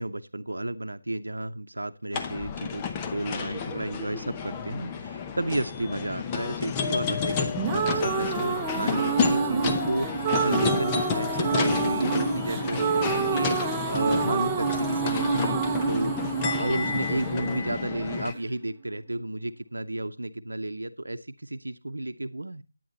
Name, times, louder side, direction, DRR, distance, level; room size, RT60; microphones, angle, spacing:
voice 1, 0.0-15.6 15.9-16.1 16.4-22.6, right 1 dB, 85° right, 9 dB, 0.9 m, -32 dB
sound 1, 2.1-18.3, left 6 dB, 15° left, 0.8 m, -31 dB
sound 2, 7.3-18.4, right 5 dB, 10° right, 1.0 m, -28 dB
10.0 x 9.4 x 4.0 m, 0.28 s
figure-of-eight pair, 165°, 0 cm